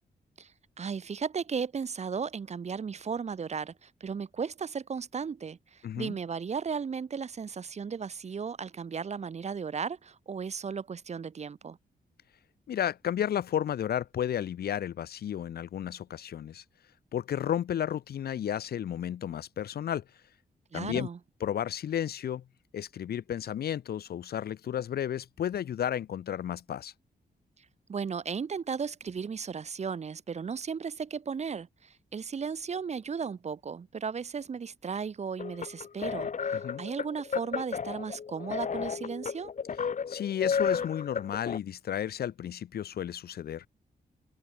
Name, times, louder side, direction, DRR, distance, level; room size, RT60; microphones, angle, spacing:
voice 1, 0.8-11.8 20.7-21.2 27.9-39.5, right 6 dB, 40° right, 1.2 m, -35 dB
voice 2, 5.8-6.1 12.7-16.6 17.1-20.0 20.7-21.1 21.4-22.4 22.7-26.9 36.5-36.8 40.1-43.6, left 10 dB, 70° left, 0.8 m, -32 dB
sound 1, 35.4-41.6, left 6 dB, 50° left, 2.6 m, -33 dB
wide cardioid pair, 125°, 17 cm